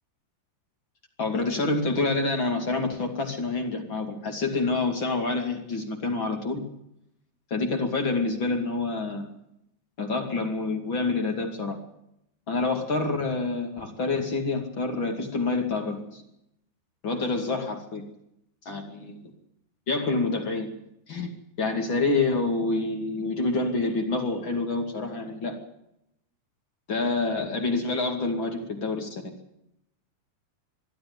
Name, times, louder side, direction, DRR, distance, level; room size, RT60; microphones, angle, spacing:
voice 1, 1.2-6.6 7.5-9.3 10.0-11.8 12.5-16.2 17.0-18.0 18.6-19.1 19.9-20.7 21.1-21.3 21.6-25.6 26.9-29.3, left 3 dB, 35° left, 3 dB, 2.4 m, -27 dB
22.5 x 12.5 x 9.5 m, 0.80 s
omnidirectional pair, 5.0 m